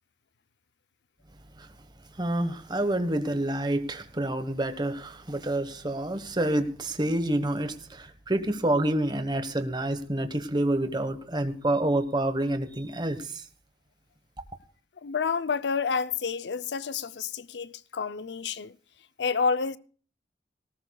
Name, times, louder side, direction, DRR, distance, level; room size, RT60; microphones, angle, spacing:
voice 1, 2.2-13.4, right 1 dB, 25° right, 1.3 m, -28 dB
voice 2, 15.0-18.8 19.2-19.8, left 5 dB, 80° left, 0.6 m, -29 dB
18.5 x 18.0 x 2.3 m
head